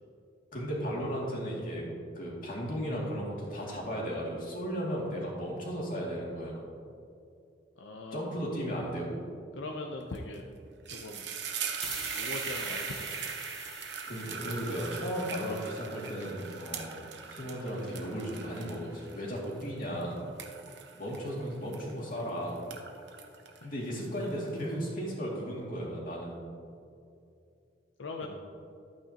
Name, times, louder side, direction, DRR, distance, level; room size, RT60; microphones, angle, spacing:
voice 1, 0.5-1.9 2.1-6.6 8.1-9.3 14.1-17.0 17.3-20.3 20.9-22.7 23.6-26.4 28.2-28.3, equal, 50° left, -4 dB, 2.4 m, -35 dB
voice 2, 7.8-8.3 9.6-10.4 10.9-11.3 12.2-13.2 28.0-28.3, left 2 dB, 85° left, 2 dB, 0.6 m, -40 dB
sound 1, 10.1-10.4 10.7-22.2 22.6-24.5, right 6 dB, 65° right, 0.8 m, -40 dB
sound 2, 11.8-15.2, equal, ahead, 1.3 m, -44 dB
12.0 x 8.7 x 2.9 m, 2.5 s
head